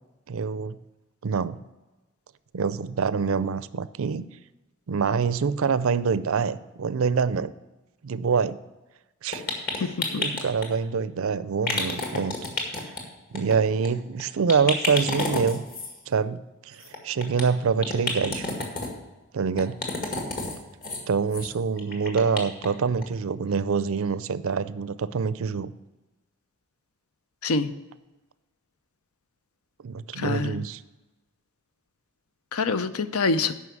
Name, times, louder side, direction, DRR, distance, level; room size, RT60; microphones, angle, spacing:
voice 1, 0.3-0.8 1.2-1.6 2.5-4.3 4.9-7.5 8.0-8.6 9.2-9.4 9.8-12.3 13.3-15.6 16.1-18.5 19.3-19.8 21.1-25.7 29.8-30.8, right 5 dB, 65° right, 15 dB, 0.5 m, -26 dB
sound 1, 9.3-10.7 11.6-13.0 13.3-13.6 13.8-13.9 14.2-14.3 14.5-15.9 16.8-17.4 17.8-18.9 19.6-20.6 20.8-21.0 21.3-21.5 21.8-22.7 23.0-23.1 23.5-23.6, left 3 dB, 45° left, 1.9 m, -30 dB
voice 2, 9.8-10.2 27.4-27.7 30.2-30.6 32.5-33.5, left 4 dB, 75° left, 12 dB, 0.6 m, -26 dB
9.5 x 5.8 x 7.1 m, 1.1 s
head